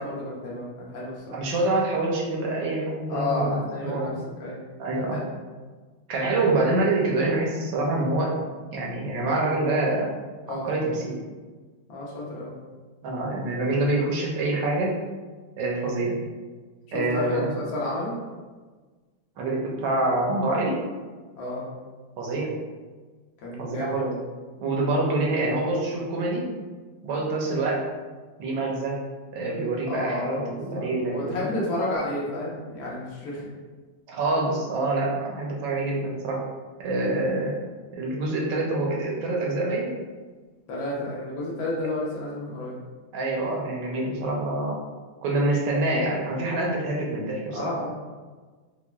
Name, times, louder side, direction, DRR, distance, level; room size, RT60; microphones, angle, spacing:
voice 1, 0.0-1.4 3.1-4.6 5.0-5.3 10.5-10.6 11.9-12.6 16.9-18.1 21.4-21.7 23.4-24.2 29.9-33.5 40.7-42.8 47.5-47.9, left 2 dB, 85° left, -5 dB, 1.7 m, -31 dB
voice 2, 1.3-3.6 3.8-4.2 4.8-5.2 6.1-8.4 8.7-10.1 10.6-11.2 13.0-15.0 15.6-16.2 16.9-17.5 19.4-20.8 22.2-22.5 23.6-24.1 24.6-26.4 27.0-27.8 28.4-29.0 29.3-31.5 34.1-36.4 36.8-37.5 37.9-39.9 43.1-44.8 45.2-47.7, right 2 dB, 70° right, -2 dB, 1.2 m, -26 dB
5.7 x 2.1 x 2.3 m, 1.4 s
omnidirectional pair, 2.2 m